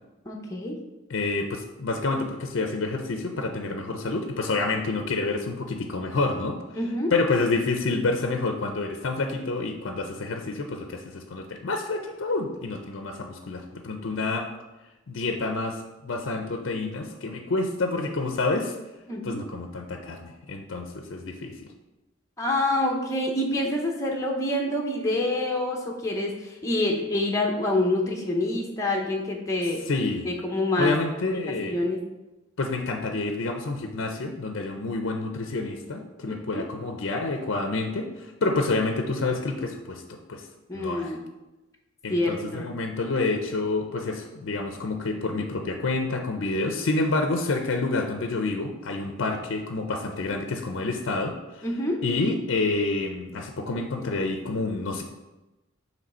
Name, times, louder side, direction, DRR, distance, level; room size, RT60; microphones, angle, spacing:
voice 1, 0.2-0.8 6.7-7.1 19.1-19.4 22.4-29.8 30.2-31.0 31.2-31.4 31.7-32.0 36.3-36.7 40.7-41.2 42.1-42.7 51.6-52.0, left 1 dB, 15° left, 0 dB, 0.7 m, -27 dB
voice 2, 1.1-6.6 7.1-14.5 15.1-18.7 19.2-21.5 29.9-30.3 30.8-31.8 32.6-40.5 40.7-41.2 42.0-51.6 52.0-55.0, left 3 dB, 65° left, 4 dB, 0.5 m, -28 dB
7.6 x 3.2 x 4.2 m, 1.0 s
head